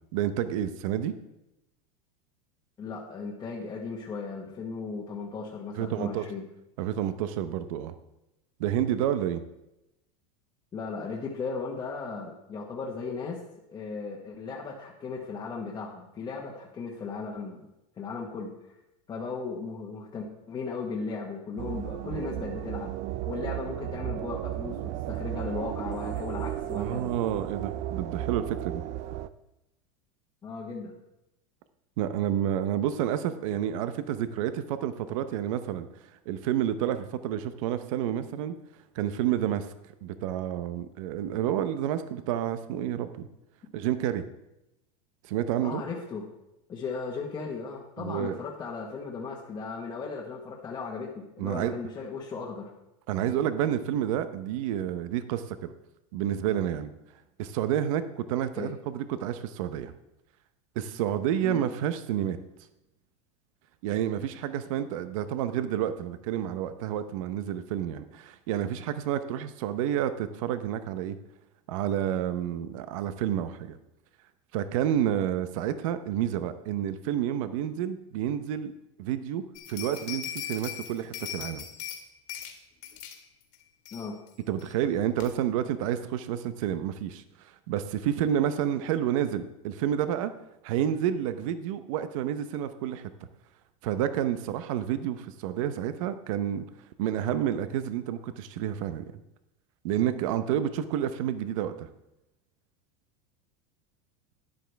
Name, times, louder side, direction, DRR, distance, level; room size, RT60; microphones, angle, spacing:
voice 1, 0.1-1.1 5.8-6.3 6.8-7.9 8.6-9.4 26.7-28.8 32.0-35.9 36.3-38.5 38.9-39.7 40.0-43.3 43.7-44.2 45.3-45.8 48.0-48.4 51.4-51.7 53.1-55.7 56.1-56.9 57.4-59.9 60.8-62.4 63.8-71.2 71.7-73.8 74.5-78.7 79.0-79.4 79.7-81.6 84.5-87.2 87.7-90.3 90.6-93.0 93.8-96.7 97.0-99.1 99.8-101.9, right 10 dB, 65° right, 11 dB, 0.8 m, -29 dB
voice 2, 2.8-6.4 10.7-13.4 13.7-17.7 18.0-18.7 19.1-23.0 23.2-24.8 25.1-27.1 30.4-30.9 45.6-46.3 46.7-52.7 58.6-58.8 61.4-61.6 83.9-84.2, left 4 dB, 20° left, -4 dB, 1.3 m, -36 dB
sound 1, 21.6-29.3, right 13 dB, 40° right, 0.4 m, -34 dB
bell ringing, 79.6-82.0 82.3-82.5 82.8-83.2 83.5-83.6 83.9-84.3 84.6-84.7 85.2-85.3, left 9 dB, 45° left, 1.9 m, -39 dB
12.5 x 9.5 x 3.4 m, 0.90 s
supercardioid pair, 150°, 18 cm